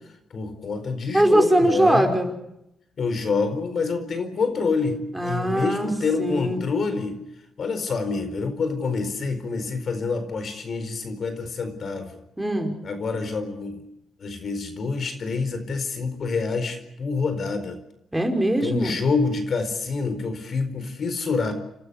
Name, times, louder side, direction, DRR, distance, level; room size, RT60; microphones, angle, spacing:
voice 1, 0.3-2.1 3.0-7.2 7.6-12.1 12.8-13.8 14.2-17.8 18.6-21.5, left 4 dB, 55° left, 9 dB, 4.5 m, -27 dB
voice 2, 1.1-2.3 5.1-5.9 6.2-6.6 12.4-12.7 18.1-19.0, right 1 dB, 10° right, 3 dB, 5.3 m, -21 dB
30.0 x 13.0 x 9.9 m, 0.84 s
cardioid pair, 70°, 0 cm